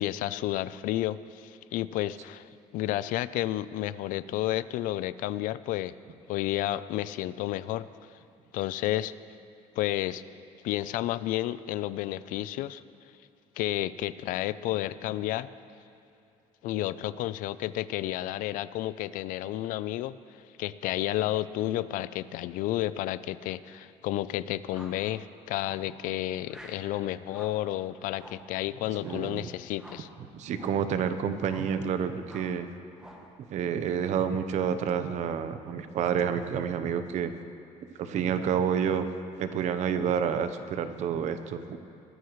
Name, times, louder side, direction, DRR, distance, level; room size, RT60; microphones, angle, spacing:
voice 1, 0.0-2.4 2.7-5.9 6.3-7.9 8.5-9.1 9.8-10.2 10.6-12.8 13.6-15.5 16.6-20.2 20.6-30.1, left 14 dB, 75° left, 15 dB, 0.5 m, -31 dB
sound 1, 24.7-25.0 25.6-25.9 26.5-26.9 27.3-27.7 28.1-28.5 29.0-29.3 29.8-30.1 30.5-30.9 31.4-31.8 32.2-32.6 33.0-33.3, equal, 5° right, 1.3 m, -49 dB
voice 2, 29.0-29.5 30.3-32.7 33.5-37.3 38.0-39.0 39.4-41.8, right 7 dB, 60° right, 10 dB, 0.8 m, -29 dB
21.5 x 14.5 x 3.2 m, 2.8 s
cardioid pair, 145°, 14 cm